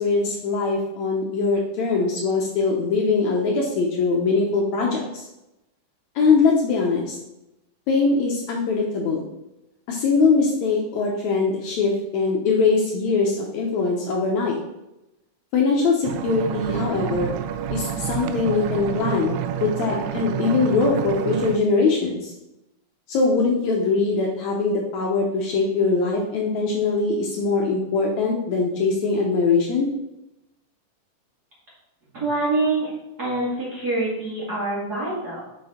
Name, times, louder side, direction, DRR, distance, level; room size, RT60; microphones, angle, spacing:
voice 1, 0.0-5.3 6.2-7.2 7.9-9.3 9.9-14.6 15.5-17.4 17.7-22.3 23.1-29.9, left 4 dB, 70° left, -1 dB, 1.9 m, -22 dB
sound 1, 16.0-21.6, right 10 dB, 80° right, 2.0 m, -29 dB
voice 2, 32.1-32.9 33.2-35.4, right 2 dB, 35° right, -7 dB, 2.2 m, -25 dB
6.0 x 5.5 x 4.3 m, 0.92 s
omnidirectional pair, 3.8 m